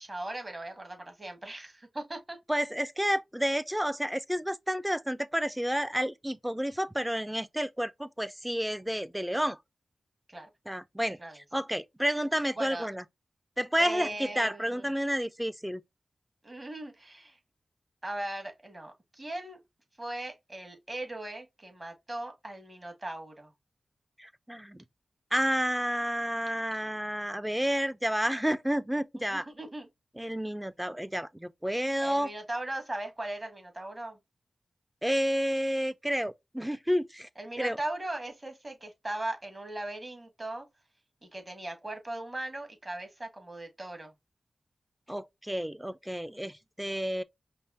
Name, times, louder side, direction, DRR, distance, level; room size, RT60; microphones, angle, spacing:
voice 1, 0.0-2.4 10.3-10.5 11.2-11.4 12.6-12.9 13.8-14.9 16.4-17.4 18.0-19.6 20.0-23.5 29.2-29.9 32.0-34.2 37.4-40.7 41.2-44.1, right 1 dB, 30° right, 1.8 m, -39 dB
voice 2, 2.5-9.6 10.7-13.0 13.6-15.8 24.2-24.8 25.3-29.4 30.2-32.3 35.0-37.3 37.6-37.8 45.1-47.2, equal, 5° right, 0.5 m, -30 dB
5.4 x 2.0 x 2.7 m
cardioid pair, 45°, 0 cm